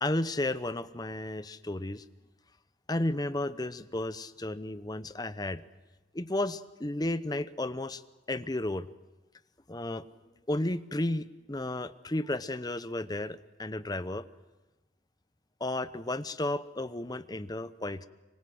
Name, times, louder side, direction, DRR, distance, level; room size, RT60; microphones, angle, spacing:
voice 1, 0.0-2.0 2.9-5.6 6.1-8.0 8.3-8.9 9.7-10.0 10.5-14.3 15.6-18.1, left 1 dB, 20° left, 13 dB, 0.8 m, -33 dB
26.0 x 24.0 x 7.8 m, 1.1 s
head